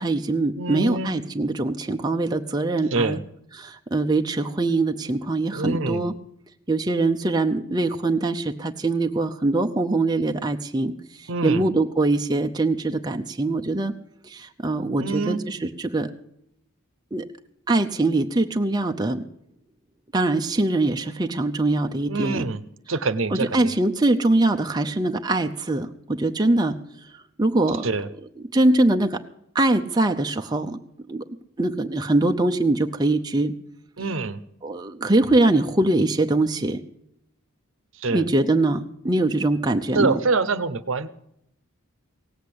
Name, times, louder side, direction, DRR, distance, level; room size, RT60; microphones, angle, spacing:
voice 1, 0.0-3.2 3.6-6.1 6.7-10.9 11.2-13.9 14.2-16.1 17.1-17.2 17.7-19.2 20.1-22.5 23.3-26.8 27.4-27.9 28.5-29.2 29.5-30.8 31.1-31.2 31.6-33.5 34.6-36.8 38.1-40.2, right 2 dB, 20° right, 4 dB, 0.6 m, -22 dB
voice 2, 0.6-1.1 2.9-3.2 5.5-6.1 11.3-11.7 15.0-15.4 22.1-22.6 22.9-23.7 27.7-28.1 34.0-34.4 37.9-38.3 39.9-41.1, right 3 dB, 60° right, 13 dB, 0.8 m, -25 dB
17.5 x 8.0 x 8.6 m, 0.75 s
head